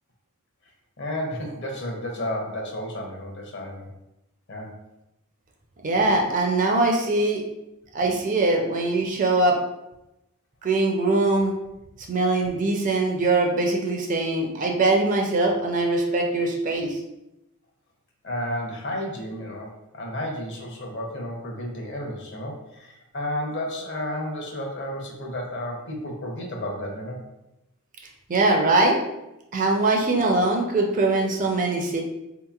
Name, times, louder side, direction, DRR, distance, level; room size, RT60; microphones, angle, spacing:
voice 1, 1.0-3.9 4.5-4.7 18.2-27.2, left 1 dB, 55° left, 0 dB, 0.7 m, -32 dB
voice 2, 5.8-7.4 7.9-9.6 10.6-11.5 12.1-17.0 28.3-29.0 29.5-32.0, right 2 dB, 35° right, 1 dB, 0.5 m, -22 dB
3.9 x 2.9 x 2.4 m, 0.91 s
head